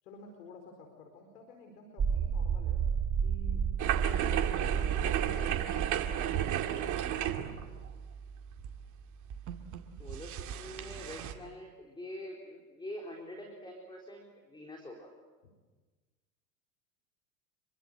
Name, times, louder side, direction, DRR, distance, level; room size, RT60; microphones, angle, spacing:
voice 1, 0.0-2.8 3.2-7.5 15.4-15.5, left 2 dB, 75° left, 4 dB, 4.8 m, -52 dB
sound 1, 2.0-7.8, right 7 dB, 25° right, 1.0 m, -32 dB
sound 2, 3.8-11.3, right 10 dB, 40° right, 2.4 m, -34 dB
voice 2, 10.0-15.1, left 1 dB, 10° left, 1 dB, 4.2 m, -45 dB
27.0 x 24.0 x 8.0 m, 1.3 s
hypercardioid pair, 100°, 46 cm